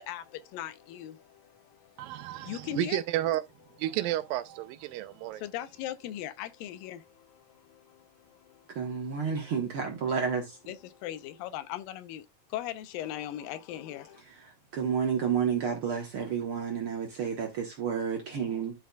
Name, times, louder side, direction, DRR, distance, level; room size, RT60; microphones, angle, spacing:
voice 1, 0.0-3.0 4.9-7.0 8.2-9.3 10.7-12.3 12.5-14.2, left 12 dB, 85° left, 2.4 m, -39 dB
voice 2, 2.0-3.4 3.8-5.5, right 14 dB, 85° right, 2.4 m, -32 dB
voice 3, 8.7-10.6 14.7-18.7, right 7 dB, 60° right, 1.4 m, -30 dB
12.0 x 5.1 x 2.3 m
omnidirectional pair, 4.0 m